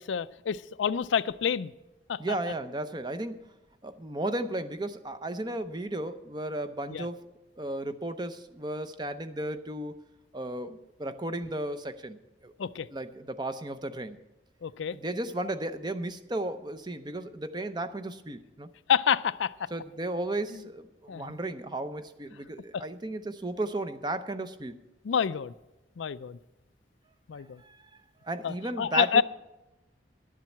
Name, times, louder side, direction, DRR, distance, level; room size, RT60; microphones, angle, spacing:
voice 1, 0.0-1.7 2.1-2.2 6.9-7.1 12.6-12.9 14.6-15.0 18.9-19.7 20.5-20.6 21.1-21.4 22.7-22.8 25.0-25.5 26.0-26.4 27.3-27.6 28.4-29.2, left 7 dB, 75° left, 16 dB, 0.4 m, -28 dB
voice 2, 2.2-3.5 3.8-7.3 7.6-10.0 10.3-12.5 12.9-14.2 14.9-18.7 19.7-24.8 27.6-27.9 28.2-29.2, right 1 dB, 25° right, 11 dB, 0.6 m, -34 dB
11.5 x 7.5 x 8.4 m, 0.98 s
head